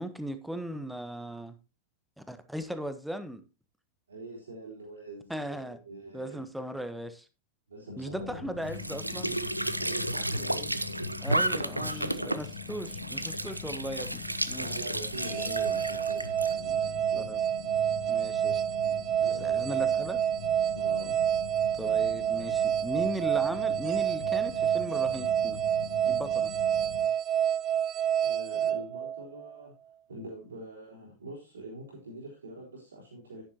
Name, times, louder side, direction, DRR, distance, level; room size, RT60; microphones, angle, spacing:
voice 1, 0.0-1.6 2.3-3.4 5.3-5.8 6.1-7.3 8.0-9.4 11.2-14.7 17.2-17.4 18.1-20.2 21.8-25.6 26.1-26.5, equal, ahead, 10 dB, 1.1 m, -38 dB
voice 2, 4.1-6.4 7.7-8.4 9.8-10.9 11.1-12.4 14.5-16.3 16.6-17.3 18.0-18.1 19.2-19.8 20.7-21.2 28.2-29.7 30.1-33.4, right 2 dB, 70° right, -5 dB, 3.6 m, -43 dB
sound 1, 8.2-27.1, left 8 dB, 65° left, 1.2 m, -43 dB
Squeak / Sink (filling or washing) / Trickle dribble, 8.6-16.5, right 1 dB, 85° right, 0.5 m, -33 dB
sound 2, 15.2-29.5, right 9 dB, 30° right, 0.6 m, -28 dB
10.0 x 10.0 x 2.8 m, 0.28 s
figure-of-eight pair, 90°, 0 cm